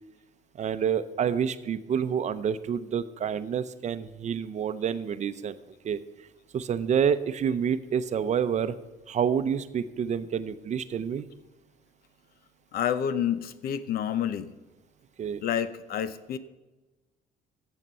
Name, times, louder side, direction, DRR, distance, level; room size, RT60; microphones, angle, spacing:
voice 1, 0.5-5.6 5.8-6.0 6.5-8.8 9.1-11.3 15.2-15.4, right 7 dB, 45° right, 12 dB, 0.7 m, -28 dB
voice 2, 12.7-14.5 15.4-16.4, left 9 dB, 65° left, 14 dB, 0.7 m, -29 dB
14.0 x 7.3 x 5.5 m, 1.1 s
cardioid pair, 110°, 17 cm